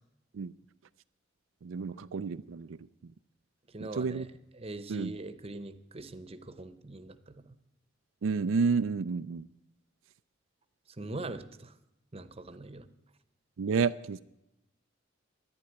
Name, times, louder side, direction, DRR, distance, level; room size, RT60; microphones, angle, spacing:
voice 1, 1.6-2.8 3.0-3.1 3.8-4.3 4.9-5.1 8.2-9.5 13.6-14.2, right 5 dB, 80° right, 13 dB, 0.4 m, -30 dB
voice 2, 3.7-4.3 4.6-7.5 11.0-11.7 12.1-12.9, right 2 dB, 30° right, 12 dB, 0.8 m, -42 dB
11.5 x 10.5 x 9.1 m, 0.86 s
head